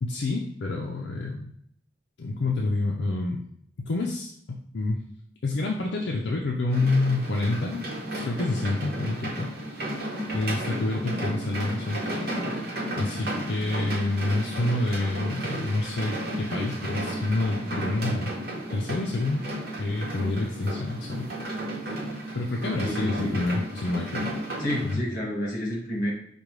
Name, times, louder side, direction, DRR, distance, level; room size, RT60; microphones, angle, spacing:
voice 1, 0.0-1.5 2.2-3.4 3.8-5.0 5.4-7.9 8.1-9.5 10.3-12.1 12.5-12.6 13.0-18.3 18.7-19.4 19.8-21.3 21.9-22.0 22.3-24.3 24.8-25.0, left 2 dB, 75° left, -1 dB, 0.5 m, -28 dB
sound 1, 6.7-24.9, right 1 dB, 55° right, 0.9 m, -33 dB
voice 2, 22.6-23.4 24.6-26.1, equal, 45° left, -3 dB, 1.4 m, -30 dB
5.1 x 2.2 x 3.1 m, 0.66 s
head